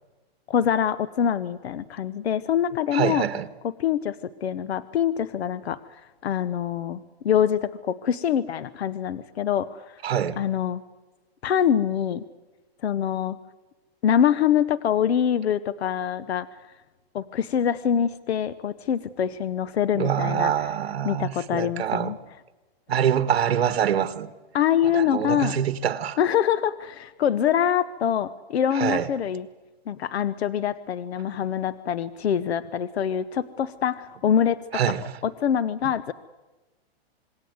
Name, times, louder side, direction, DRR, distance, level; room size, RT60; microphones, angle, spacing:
voice 1, 0.5-3.3 3.6-5.8 6.2-10.0 10.4-10.8 11.4-12.2 12.8-13.4 14.0-16.5 17.1-20.5 21.0-22.2 24.5-25.6 26.2-29.5 29.9-34.8 35.2-36.1, left 9 dB, 80° left, 1.0 m, -24 dB
voice 2, 2.9-3.5 10.0-10.4 19.9-22.1 22.9-24.3 24.9-26.2 28.7-29.1 34.7-35.1, right 9 dB, 75° right, 1.6 m, -25 dB
26.5 x 21.0 x 8.0 m
hypercardioid pair, 175°, 31 cm